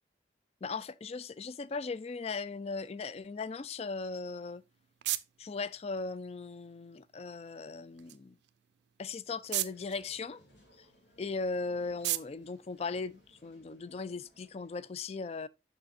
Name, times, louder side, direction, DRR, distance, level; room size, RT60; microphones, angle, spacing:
voice 1, 0.6-4.6 5.4-8.4 9.0-10.4 10.8-10.9 11.2-15.5, left 4 dB, 35° left, 0.4 m, -38 dB
sound 1, 4.2-13.7, right 16 dB, 75° right, 0.5 m, -42 dB
sound 2, 9.7-14.8, equal, 90° left, 3.0 m, -64 dB
6.6 x 5.9 x 2.6 m
head